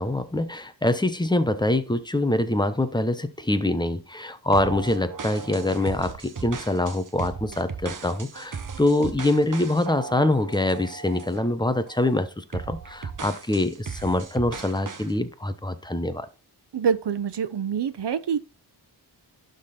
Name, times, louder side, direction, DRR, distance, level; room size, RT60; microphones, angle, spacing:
voice 1, 0.0-16.3, left 1 dB, 10° left, 0.9 m, -24 dB
sound 1, 4.5-11.5 11.9-12.1 12.5-15.1, right 5 dB, 50° right, 1.0 m, -37 dB
voice 2, 16.7-18.4, right 7 dB, 80° right, 0.8 m, -25 dB
11.5 x 3.9 x 4.3 m
wide cardioid pair, 90°, 41 cm